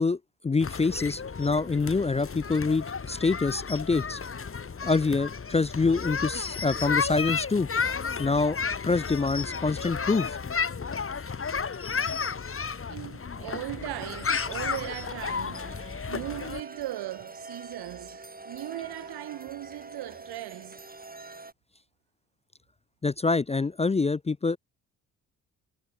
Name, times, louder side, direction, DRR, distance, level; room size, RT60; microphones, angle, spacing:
voice 1, 0.0-4.2 4.8-7.7 8.2-8.6 8.8-10.4 23.0-24.6, left 4 dB, 15° left, 0.5 m, -26 dB
sound 1, 0.6-16.6, left 5 dB, 30° left, 1.8 m, -32 dB
voice 2, 12.9-15.8 16.1-20.8, right 16 dB, 70° right, 1.0 m, -38 dB
sound 2, 15.5-21.5, right 3 dB, 20° right, 5.7 m, -45 dB
hypercardioid pair, 50°, 40 cm